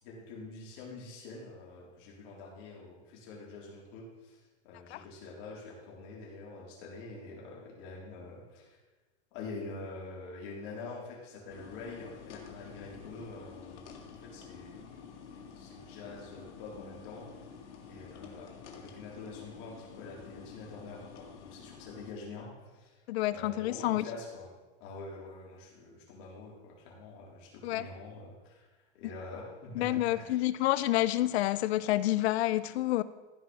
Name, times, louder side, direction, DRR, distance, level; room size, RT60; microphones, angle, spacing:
voice 1, 0.0-4.4 4.6-8.8 9.3-14.8 15.3-17.3 17.9-23.0 23.3-24.5 24.8-28.7 28.9-30.5, left 3 dB, 50° left, -3 dB, 4.0 m, -46 dB
sound 1, 11.5-22.1, left 6 dB, 85° left, 1.9 m, -49 dB
voice 2, 23.1-24.0 27.6-27.9 29.7-33.0, left 15 dB, 65° left, 16 dB, 0.7 m, -28 dB
15.0 x 5.2 x 5.6 m, 1.2 s
supercardioid pair, 145°, 34 cm